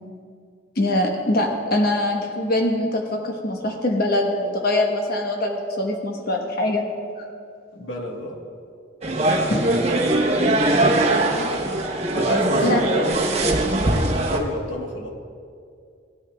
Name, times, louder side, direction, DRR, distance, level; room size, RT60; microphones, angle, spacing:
voice 1, 0.8-6.8 9.5-9.6 12.6-13.0 14.0-14.1, left 1 dB, 50° left, 2 dB, 1.1 m, -23 dB
voice 2, 7.7-8.4 9.0-9.4 11.3-11.8 12.1-13.3 13.7-15.1, left 1 dB, 75° left, 1 dB, 1.4 m, -31 dB
sound 1, 9.0-14.4, right 2 dB, 35° right, 0.8 m, -21 dB
17.0 x 9.2 x 2.4 m, 2.4 s
head